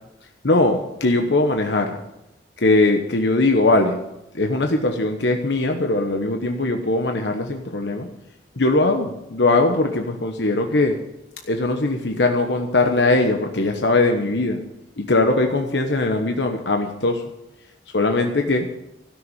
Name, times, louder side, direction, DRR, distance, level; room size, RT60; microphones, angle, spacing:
voice 1, 0.4-2.0 2.6-4.0 4.3-8.1 8.6-11.0 11.5-14.6 15.0-17.2 17.9-18.7, left 2 dB, 70° left, 4 dB, 1.2 m, -20 dB
16.0 x 6.8 x 9.3 m, 0.92 s
head